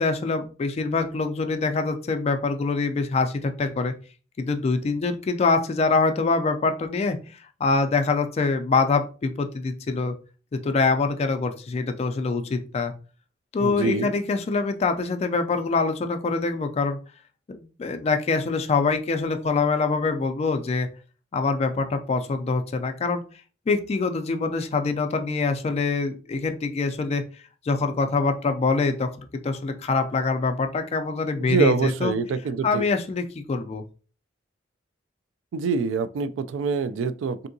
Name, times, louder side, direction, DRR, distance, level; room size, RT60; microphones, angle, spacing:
voice 1, 0.0-3.9 4.4-10.1 10.5-12.9 13.5-17.0 17.5-20.9 21.3-23.2 23.7-27.2 27.6-32.1 32.6-33.8, left 4 dB, 35° left, 0.3 m, -24 dB
voice 2, 13.6-14.1 31.4-32.8 35.5-37.5, right 4 dB, 80° right, 0.3 m, -25 dB
3.5 x 2.7 x 2.6 m
head